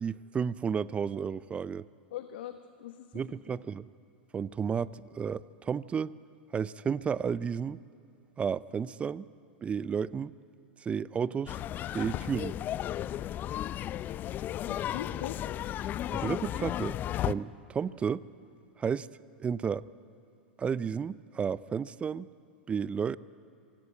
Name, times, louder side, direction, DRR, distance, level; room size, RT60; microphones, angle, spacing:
voice 1, 0.0-1.8 3.1-3.9 4.3-6.2 6.5-7.8 8.4-9.2 9.6-10.3 10.8-11.6 11.9-12.5 16.1-18.2 18.8-19.1 19.4-19.8 20.6-22.3 22.7-23.2, right 6 dB, 20° right, 19 dB, 0.5 m, -32 dB
voice 2, 2.1-3.2 3.5-3.6 14.6-15.4, left 12 dB, 65° left, 8 dB, 1.1 m, -41 dB
sound 1, 11.5-17.3, left 12 dB, 35° left, 0.5 m, -34 dB
26.5 x 16.0 x 8.9 m, 2.5 s
hypercardioid pair, 95°, 6 cm